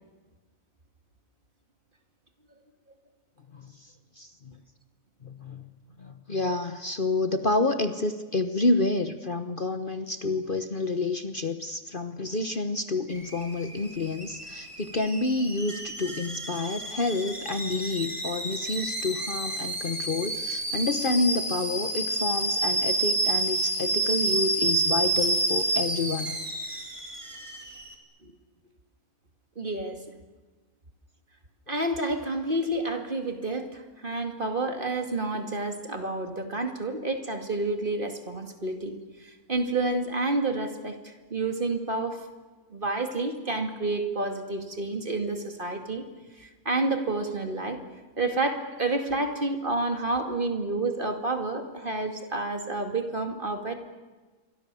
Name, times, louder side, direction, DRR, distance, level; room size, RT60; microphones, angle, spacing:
voice 1, 3.5-4.6 5.2-5.7 6.0-26.4, left 2 dB, 40° left, 9 dB, 1.2 m, -29 dB
Alarm / Boiling, 13.1-27.9, right 2 dB, 20° right, 3.4 m, -29 dB
voice 2, 29.6-30.0 31.7-42.2 42.7-46.0 46.4-47.8 48.2-53.8, right 2 dB, 35° right, 5 dB, 2.5 m, -29 dB
28.5 x 24.0 x 7.0 m, 1.3 s
omnidirectional pair, 1.5 m